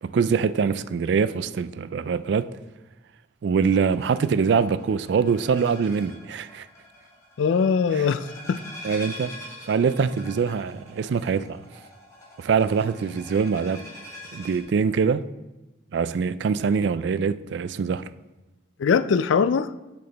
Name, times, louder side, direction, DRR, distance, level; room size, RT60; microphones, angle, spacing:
voice 1, 0.0-2.5 3.4-6.7 7.9-8.1 8.8-9.3 9.7-11.6 12.4-13.8 14.3-15.2 15.9-18.1, right 6 dB, 60° right, 0.3 m, -24 dB
sound 1, 3.7-14.6, left 1 dB, 15° left, 1.9 m, -44 dB
voice 2, 7.4-8.6 18.8-19.7, left 6 dB, 75° left, 0.3 m, -21 dB
7.7 x 6.6 x 4.0 m
head